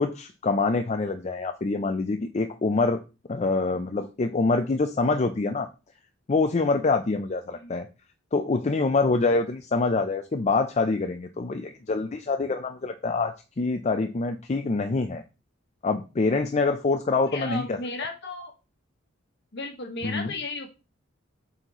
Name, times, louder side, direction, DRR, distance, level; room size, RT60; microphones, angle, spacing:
voice 1, 0.0-3.0 3.3-5.7 6.3-7.9 8.3-15.2 15.8-17.8 20.0-20.3, left 3 dB, 35° left, 7 dB, 0.5 m, -25 dB
voice 2, 17.3-18.5 19.5-20.7, left 3 dB, 60° left, 4 dB, 1.4 m, -34 dB
7.8 x 4.3 x 3.0 m, 0.29 s
head